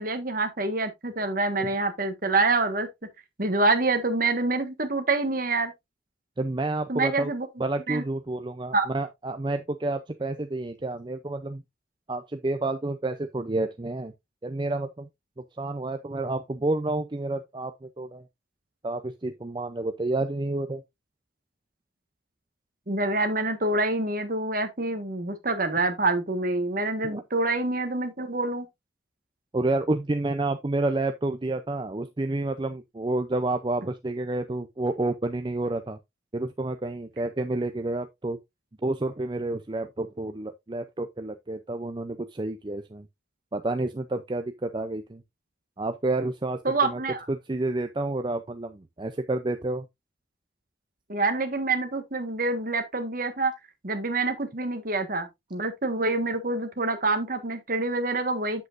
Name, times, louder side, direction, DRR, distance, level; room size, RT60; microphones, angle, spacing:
voice 1, 0.0-2.9 3.4-5.7 6.9-7.5 7.9-8.0 8.7-8.9 22.9-28.7 46.6-47.2 51.1-53.5 53.8-58.7, right 2 dB, 45° right, 1.5 m, -26 dB
voice 2, 6.4-7.3 7.6-11.6 12.1-14.1 14.4-15.1 15.6-18.2 18.8-20.8 27.0-27.2 29.5-36.0 36.3-38.4 38.8-43.1 43.5-45.2 45.8-47.0 47.3-49.9, right 2 dB, 25° right, 0.5 m, -29 dB
8.1 x 7.8 x 2.5 m
head